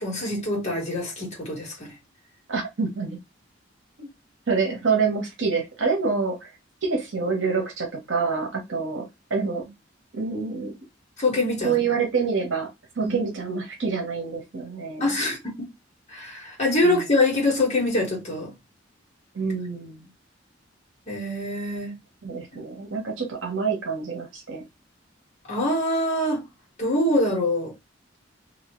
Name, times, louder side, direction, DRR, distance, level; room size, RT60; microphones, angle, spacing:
voice 1, 0.0-1.9 11.2-11.7 13.0-13.1 15.0-15.5 16.1-18.5 21.1-21.9 25.5-26.4 26.8-27.7, left 1 dB, 35° left, 1.5 m, -24 dB
voice 2, 2.5-3.2 4.0-4.1 4.5-6.5 6.8-9.6 10.1-10.7 11.6-12.7 13.0-15.1 16.8-17.1 19.3-20.1 22.2-24.6, right 5 dB, 80° right, 0.9 m, -27 dB
2.7 x 2.7 x 3.0 m
head